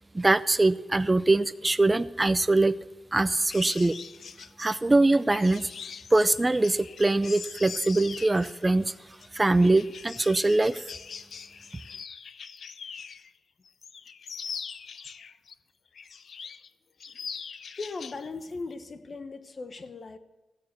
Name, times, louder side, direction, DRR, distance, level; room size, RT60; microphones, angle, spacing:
voice 1, 0.1-2.8 3.1-4.0 4.6-5.7 6.1-8.9 9.3-10.8, right 2 dB, 25° right, 0.5 m, -23 dB
sound 1, 3.5-13.3 13.7-15.5 15.9-16.7 17.0-18.2 18.5-18.7, left 6 dB, 70° left, 0.6 m, -42 dB
voice 2, 17.8-20.2, left 3 dB, 50° left, 1.2 m, -38 dB
16.0 x 9.4 x 7.0 m
cardioid pair, 65°, 0 cm